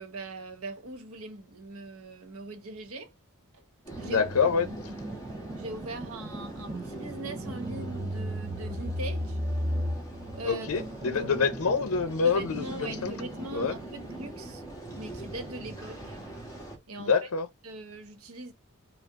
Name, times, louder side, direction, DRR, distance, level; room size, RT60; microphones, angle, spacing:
voice 1, 0.0-3.1 3.5-3.6 4.0-5.0 5.6-9.4 10.3-10.9 11.2-11.4 12.2-14.6 15.0-16.2 16.9-17.1 17.6-18.5, right 2 dB, 75° right, 0.9 m, -41 dB
sound 1, 3.8-16.8, right 2 dB, 15° left, 1.3 m, -43 dB
sound 2, 3.9-14.4, equal, 25° right, 0.5 m, -36 dB
voice 2, 4.0-4.7 10.4-13.1 13.5-13.8 17.0-17.5, left 5 dB, 75° left, 0.6 m, -26 dB
4.7 x 2.0 x 3.5 m
head